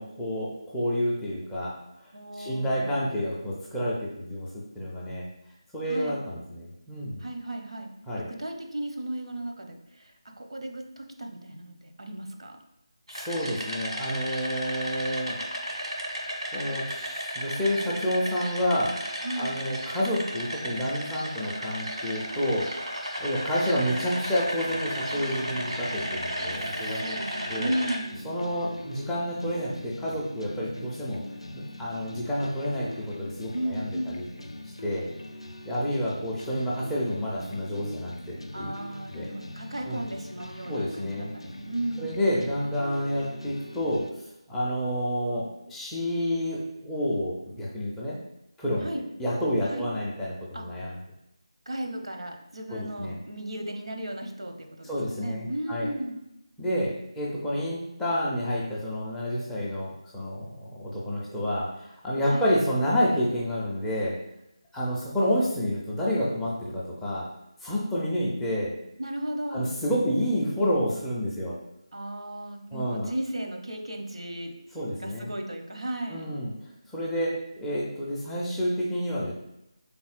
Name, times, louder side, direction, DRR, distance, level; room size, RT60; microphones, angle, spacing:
voice 1, 0.0-1.7 2.4-5.3 5.7-7.2 8.1-8.3 13.1-15.4 16.5-19.0 19.4-22.7 23.2-27.0 27.5-27.7 28.2-31.2 31.5-34.3 34.8-35.1 35.7-38.7 39.1-39.3 39.9-40.0 40.7-41.3 42.0-44.1 44.5-48.2 48.6-51.0 52.7-53.1 54.8-55.9 56.6-64.2 64.7-67.3 67.6-68.7 69.5-71.5 72.7-73.1 74.7-75.3 76.1-76.5 76.9-79.3, equal, 5° left, -7 dB, 0.4 m, -29 dB
voice 2, 2.1-3.0 5.9-6.2 7.2-7.9 8.2-12.6 19.2-19.5 26.6-28.3 33.5-34.2 38.5-42.2 48.8-49.0 49.7-49.9 50.5-50.6 51.7-56.2 62.3-62.5 69.0-69.7 71.9-74.5 75.0-76.2, right 1 dB, 65° right, 3 dB, 0.7 m, -35 dB
sound 1, 13.1-28.0, equal, 85° right, 1.2 m, -34 dB
sound 2, 24.6-44.1, left 1 dB, 75° left, 0.4 m, -42 dB
4.0 x 3.6 x 2.4 m, 0.84 s
figure-of-eight pair, 160°, 3 cm